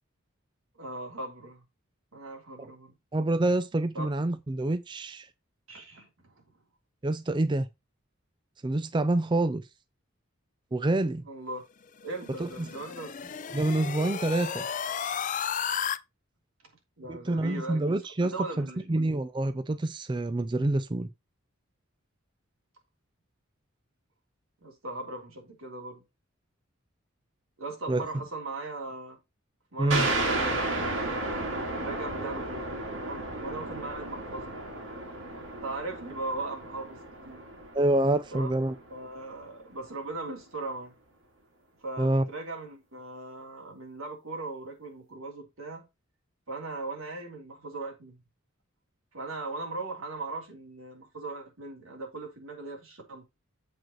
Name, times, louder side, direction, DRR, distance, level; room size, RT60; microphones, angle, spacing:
voice 1, 0.7-1.6 2.1-2.9 3.9-4.1 5.7-6.3 11.3-11.6 12.0-13.1 17.0-17.9 18.2-18.9 24.6-26.0 27.6-29.2 29.7-30.4 31.1-34.5 35.6-37.0 37.2-37.5 38.3-38.5 38.9-40.9 41.8-45.8 46.5-48.2 49.1-53.2, right 2 dB, 85° right, 3.2 m, -39 dB
voice 2, 3.1-5.3 7.0-7.7 8.6-9.6 10.7-11.2 12.4-12.7 13.5-14.7 17.1-21.1 27.9-28.0 29.8-30.1 37.7-38.7 42.0-42.2, right 2 dB, 20° right, 0.4 m, -27 dB
sound 1, 12.0-16.0, left 7 dB, 40° left, 0.4 m, -33 dB
sound 2, 29.9-39.1, right 2 dB, 65° right, 2.7 m, -33 dB
7.7 x 5.0 x 4.4 m
head